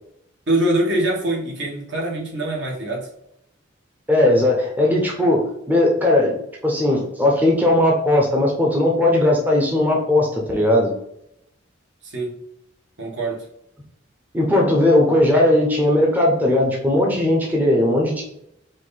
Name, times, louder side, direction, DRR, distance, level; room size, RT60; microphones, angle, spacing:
voice 1, 0.5-3.1 12.0-12.3 13.0-13.4, right 1 dB, 60° right, -2 dB, 1.5 m, -23 dB
voice 2, 4.1-6.4 6.6-10.9 14.3-18.2, left 1 dB, 10° right, -2 dB, 0.7 m, -18 dB
4.7 x 2.6 x 4.0 m, 0.78 s
head